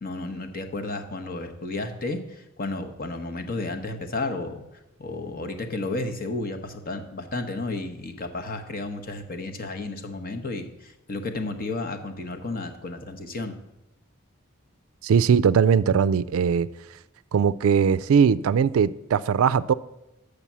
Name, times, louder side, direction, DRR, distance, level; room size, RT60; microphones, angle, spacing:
voice 1, 0.0-4.6 5.0-13.5, left 2 dB, 45° left, 0.9 m, -32 dB
voice 2, 15.0-16.7 17.3-19.7, right 7 dB, 75° right, 0.3 m, -20 dB
7.0 x 6.6 x 7.3 m
head